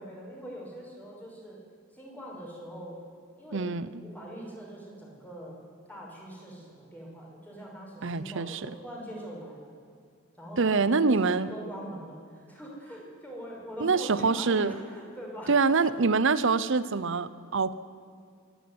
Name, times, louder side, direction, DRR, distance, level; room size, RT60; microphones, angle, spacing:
voice 1, 0.0-1.6 1.9-3.0 3.4-5.6 5.9-9.7 10.4-16.0, equal, 10° left, -2 dB, 5.8 m, -42 dB
voice 2, 3.5-3.9 8.0-8.7 10.6-11.5 13.8-14.7 15.5-17.7, right 4 dB, 65° right, 16 dB, 0.8 m, -25 dB
24.5 x 11.5 x 9.7 m, 2.2 s
head